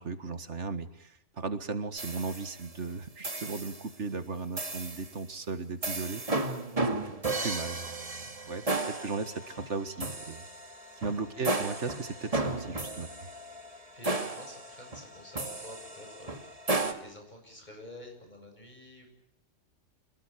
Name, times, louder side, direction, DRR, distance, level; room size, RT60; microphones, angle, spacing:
voice 1, 0.0-10.5 11.0-13.1, right 4 dB, 65° right, 11 dB, 2.0 m, -37 dB
sound 1, 2.0-2.8 3.2-3.9 4.6-5.1 5.8-16.9, right 2 dB, 30° right, 2.1 m, -34 dB
voice 2, 13.9-19.1, left 1 dB, 35° left, 3 dB, 7.7 m, -49 dB
26.5 x 20.0 x 9.0 m, 0.78 s
omnidirectional pair, 1.3 m